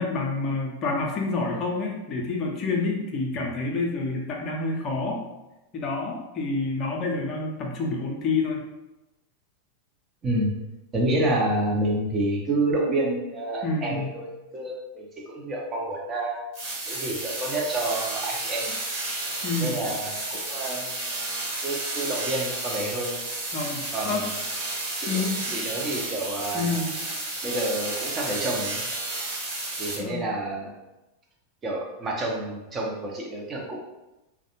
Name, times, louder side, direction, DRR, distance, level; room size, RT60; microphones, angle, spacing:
voice 1, 0.0-5.2 5.7-8.6 13.6-14.2 19.4-19.8 23.5-24.2 25.1-25.7 26.5-27.0 30.0-30.2, left 3 dB, 35° left, -1 dB, 0.5 m, -28 dB
voice 2, 10.2-10.6 10.9-16.4 16.9-18.8 19.6-20.9 21.6-23.2 23.9-24.4 25.0-25.2 25.5-26.8 27.4-28.8 29.8-30.7 31.6-33.8, right 1 dB, 25° right, -1 dB, 0.5 m, -29 dB
sound 1, 16.5-29.9, right 2 dB, 45° right, 1.2 m, -32 dB
2.3 x 2.1 x 2.8 m, 0.99 s
figure-of-eight pair, 90°, 0 cm